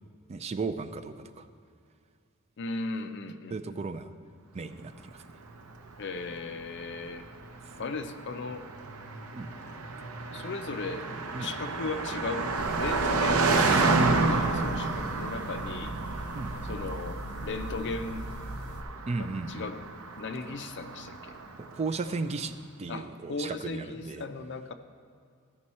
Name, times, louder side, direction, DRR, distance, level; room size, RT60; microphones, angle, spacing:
voice 1, 0.3-1.5 3.5-4.1 4.5-5.2 9.3-9.5 11.3-11.5 14.4-15.0 16.3-16.5 19.1-19.7 21.6-24.3, right 3 dB, 30° right, 9 dB, 0.4 m, -35 dB
voice 2, 2.6-3.8 6.0-7.3 7.8-8.7 10.3-11.1 11.4-12.5 12.8-15.9 16.7-18.2 19.2-19.8 20.2-21.3 22.9-24.7, left 3 dB, 55° left, 8 dB, 0.5 m, -37 dB
Car passing by, 5.4-21.9, right 3 dB, 75° right, 0.7 m, -31 dB
sound 1, 12.6-18.8, equal, 85° left, 0.8 m, -39 dB
14.0 x 5.4 x 4.2 m, 2.3 s
head